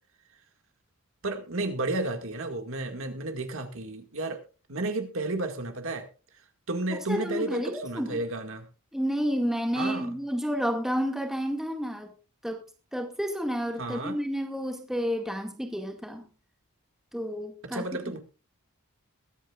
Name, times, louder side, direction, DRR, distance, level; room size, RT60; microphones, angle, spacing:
voice 1, 1.2-4.4 4.7-6.1 6.7-8.7 9.7-10.2 13.8-14.2 17.6-18.2, right 2 dB, 65° right, 5 dB, 2.0 m, -32 dB
voice 2, 6.9-8.2 8.9-12.1 12.4-12.6 12.9-16.2 17.1-17.8, equal, ahead, 3 dB, 2.0 m, -30 dB
22.0 x 9.1 x 2.4 m, 0.33 s
head